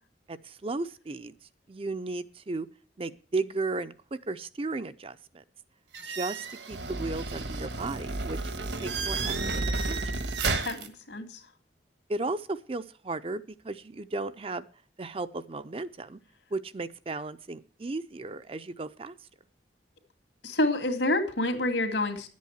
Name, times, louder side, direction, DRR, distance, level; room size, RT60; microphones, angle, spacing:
voice 1, 0.3-1.3 1.7-2.7 3.0-5.4 6.1-8.4 8.8-10.0 12.1-14.7 15.0-16.2 16.5-19.2, right 3 dB, 30° right, 13 dB, 0.5 m, -35 dB
sound 1, 5.9-10.9, right 3 dB, 70° right, 1.5 m, -32 dB
voice 2, 10.6-11.4 20.4-22.3, left 1 dB, 80° left, 5 dB, 2.2 m, -28 dB
10.5 x 8.4 x 7.9 m, 0.43 s
head